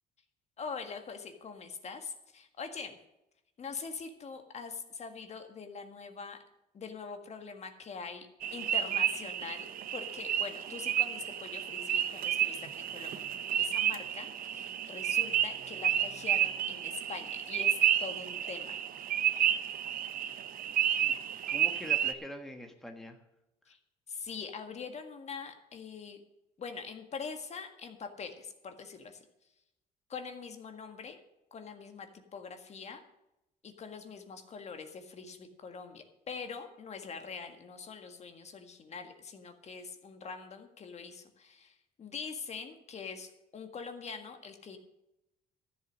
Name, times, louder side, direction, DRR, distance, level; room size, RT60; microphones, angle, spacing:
voice 1, 0.6-3.0 3.6-6.4 6.7-18.8 23.6-23.8 24.1-26.2 26.6-29.2 30.1-31.2 31.5-33.0 33.6-44.8, left 5 dB, 40° left, 6 dB, 1.7 m, -43 dB
sound 1, 8.4-22.1, right 10 dB, 55° right, 1.0 m, -31 dB
voice 2, 21.0-23.2, equal, ahead, 4 dB, 1.5 m, -44 dB
13.5 x 8.1 x 6.4 m, 0.90 s
cardioid pair, 110°, 17 cm